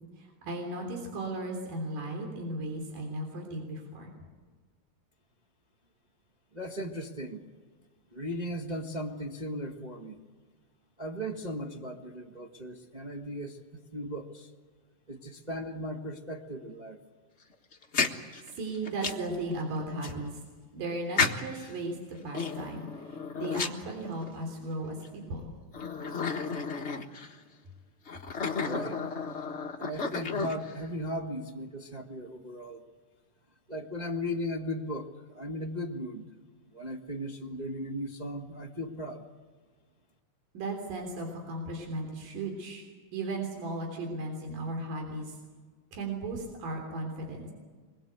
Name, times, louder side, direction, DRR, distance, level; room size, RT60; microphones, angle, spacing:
voice 1, 0.2-4.1 18.6-20.3 20.7-22.0 22.2-25.6 40.5-42.8 43.1-45.4 45.9-47.5, right 2 dB, 75° right, 2 dB, 5.0 m, -36 dB
voice 2, 6.5-7.4 8.1-10.2 11.0-13.6 13.9-14.5 15.1-17.0 28.6-29.0 29.8-32.8 33.7-36.2 36.7-39.2, equal, 35° right, -1 dB, 0.7 m, -37 dB
sound 1, 17.7-19.3 20.0-20.1 21.2-21.7 22.3-24.4 25.0-25.1 25.7-27.3 28.1-30.8, left 5 dB, 65° left, 0.6 m, -32 dB
25.0 x 21.5 x 8.2 m, 1.4 s
omnidirectional pair, 3.9 m